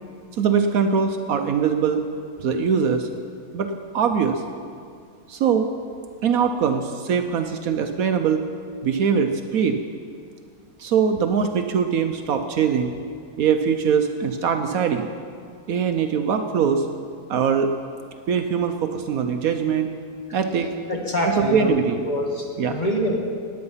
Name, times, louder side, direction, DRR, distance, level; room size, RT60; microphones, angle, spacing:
voice 1, 0.4-2.0 2.4-3.1 3.5-4.4 5.3-5.7 6.2-8.5 8.8-9.8 10.8-12.9 13.4-15.1 15.7-16.9 17.3-17.7 18.3-19.9 20.3-20.7 21.2-22.0 22.6-22.8, right 6 dB, 65° right, 6 dB, 1.1 m, -22 dB
voice 2, 20.9-21.8 22.0-23.1, equal, 30° left, 0 dB, 1.6 m, -25 dB
16.5 x 9.7 x 5.6 m, 2.3 s
omnidirectional pair, 1.7 m